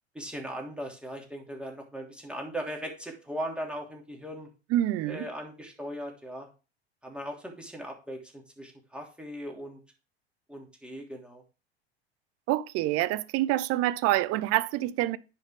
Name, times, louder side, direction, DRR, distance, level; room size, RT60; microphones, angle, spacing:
voice 1, 0.1-4.5 5.1-6.5 7.0-9.8 10.5-11.4, equal, 5° right, 2.9 m, -38 dB
voice 2, 4.7-5.2 12.5-15.2, right 15 dB, 45° right, 0.7 m, -26 dB
10.0 x 5.6 x 3.6 m
hypercardioid pair, 80°, 33 cm